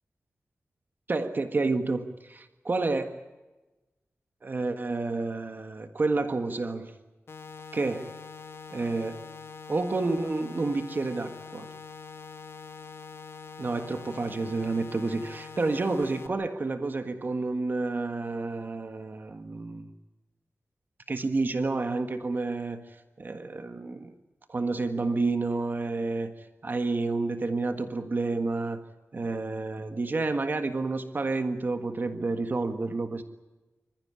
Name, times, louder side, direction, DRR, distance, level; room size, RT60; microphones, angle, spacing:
voice 1, 1.1-3.2 4.4-6.9 7.7-8.1 8.7-9.2 9.7-11.7 13.6-19.9 21.1-22.8 23.2-24.1 24.5-28.8 29.1-33.2, right 3 dB, 40° right, 8 dB, 1.5 m, -30 dB
sound 1, 7.3-16.3, left 5 dB, 60° left, 1.9 m, -44 dB
26.5 x 15.5 x 9.7 m, 1.1 s
wide cardioid pair, 140°, 5 cm